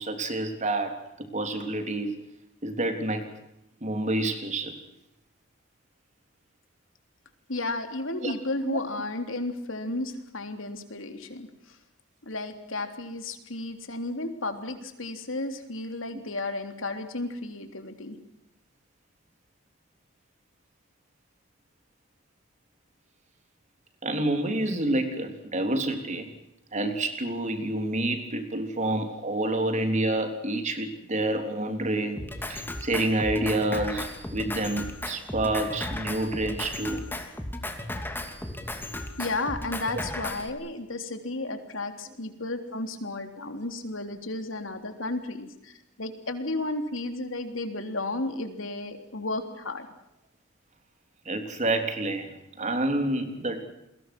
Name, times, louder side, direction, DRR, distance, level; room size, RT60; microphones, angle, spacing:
voice 1, 0.0-2.2 2.6-3.3 3.8-4.8 8.2-8.3 8.7-8.8 24.0-26.2 26.7-37.0 51.2-53.6, right 2 dB, 35° right, 6 dB, 3.5 m, -28 dB
voice 2, 7.5-11.8 12.2-18.2 39.2-49.9, left 2 dB, 75° left, 6 dB, 3.5 m, -33 dB
Drum kit, 32.2-40.5, left 1 dB, 10° left, 2.7 m, -35 dB
29.5 x 22.0 x 6.2 m, 0.85 s
head